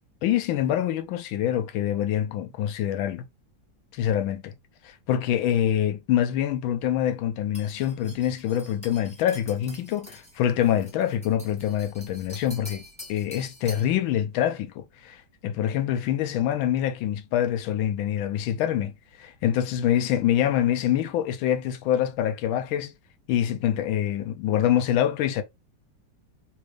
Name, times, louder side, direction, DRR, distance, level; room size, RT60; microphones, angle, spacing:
voice 1, 0.2-3.2 3.9-4.5 4.8-12.8 13.1-18.9 19.2-22.9 23.3-25.4, left 10 dB, 90° left, 1.4 m, -25 dB
sound 1, 7.5-14.0, equal, 5° left, 1.0 m, -46 dB
4.0 x 2.4 x 3.1 m
omnidirectional pair, 2.1 m